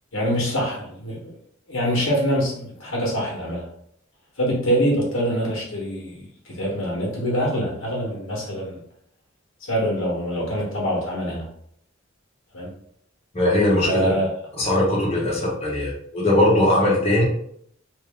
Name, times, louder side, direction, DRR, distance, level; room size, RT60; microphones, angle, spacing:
voice 1, 0.1-1.3 1.7-3.7 4.4-8.8 9.6-11.5 12.5-12.7 13.8-14.3, equal, 80° left, -3 dB, 1.3 m, -24 dB
voice 2, 13.3-14.1 14.6-17.2, left 1 dB, 30° left, -6 dB, 1.0 m, -20 dB
3.1 x 2.7 x 3.6 m, 0.67 s
head